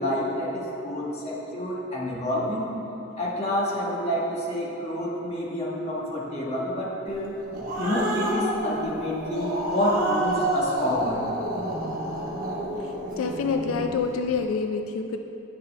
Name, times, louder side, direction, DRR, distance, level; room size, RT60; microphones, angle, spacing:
voice 1, 0.0-2.7 3.2-7.4 7.8-11.2, equal, 30° left, -5 dB, 1.3 m, -28 dB
Growling, 7.2-14.0, right 1 dB, 40° right, 1.1 m, -30 dB
voice 2, 12.8-15.2, left 5 dB, 85° left, 5 dB, 0.4 m, -27 dB
10.0 x 6.5 x 3.3 m, 3.0 s
head